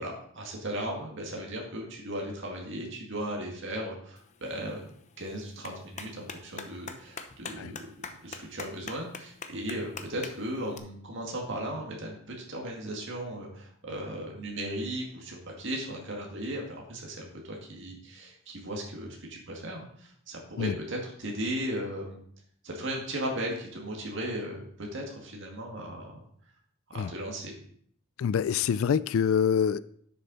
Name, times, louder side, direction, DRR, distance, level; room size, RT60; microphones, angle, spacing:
voice 1, 0.0-4.8 5.2-12.1 12.5-22.2 22.6-26.1 26.9-27.5, right 1 dB, 60° right, -1 dB, 2.1 m, -36 dB
Clapping, 4.2-10.8, left 5 dB, 35° left, 0.7 m, -45 dB
voice 2, 28.2-29.8, left 7 dB, 70° left, 17 dB, 0.3 m, -25 dB
11.0 x 6.8 x 4.1 m, 0.62 s
head